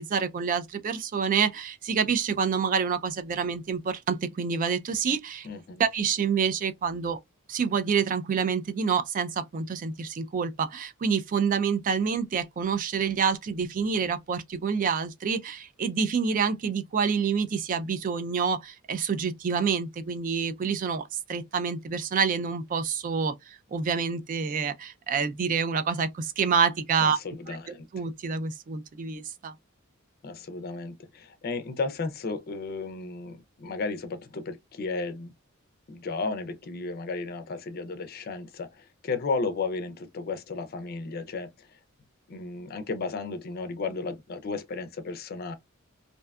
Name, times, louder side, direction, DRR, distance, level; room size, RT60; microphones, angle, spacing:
voice 1, 0.0-5.5 5.8-7.2 7.5-21.0 21.3-27.2 27.5-27.6 27.9-29.5, right 6 dB, 40° right, 0.3 m, -27 dB
voice 2, 5.4-5.8 27.0-27.9 30.2-35.3 35.9-41.7 42.3-45.5, left 3 dB, 45° left, 0.4 m, -34 dB
2.6 x 2.2 x 2.3 m
head